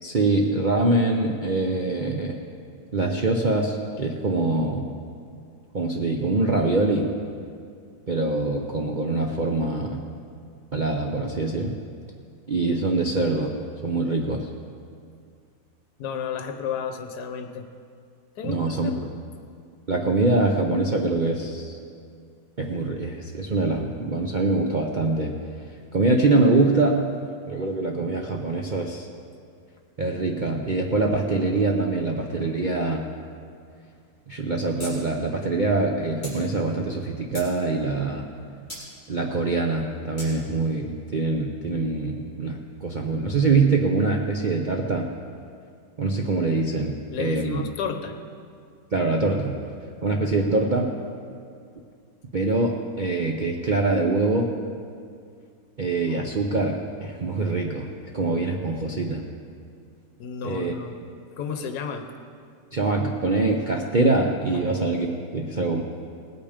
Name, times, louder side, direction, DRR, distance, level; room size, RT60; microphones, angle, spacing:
voice 1, 0.0-2.4 2.9-4.9 5.7-7.1 8.1-10.0 10.7-11.7 12.5-13.6 13.8-14.5 18.4-18.9 19.9-21.8 22.6-25.3 25.9-27.1 27.5-29.1 30.0-33.0 34.3-38.3 39.1-45.1 46.0-47.6 48.9-49.6 50.0-50.9 52.3-54.5 55.8-57.9 58.1-59.3 60.4-60.7 62.7-65.8, right 3 dB, 85° right, 1 dB, 0.4 m, -24 dB
voice 2, 16.0-17.7 18.4-19.1 47.1-48.2 60.2-60.9 61.4-62.1, left 6 dB, 65° left, 6 dB, 1.4 m, -32 dB
sound 1, 34.8-34.9 35.2-35.3 36.2-36.4 37.0-37.5 38.7-38.8 40.2-40.3, equal, 25° left, 4.5 m, -37 dB
18.5 x 8.7 x 5.1 m, 2.3 s
omnidirectional pair, 2.0 m